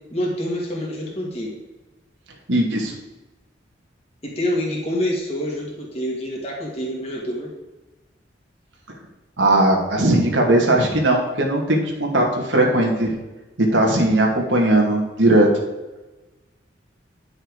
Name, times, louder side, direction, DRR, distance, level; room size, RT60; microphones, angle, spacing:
voice 1, 0.1-1.6 4.2-7.5, equal, 35° left, -3 dB, 2.3 m, -26 dB
voice 2, 2.5-2.9 9.4-13.1 13.7-15.5, right 1 dB, 85° right, -1 dB, 2.2 m, -18 dB
10.0 x 6.5 x 4.9 m, 1.1 s
head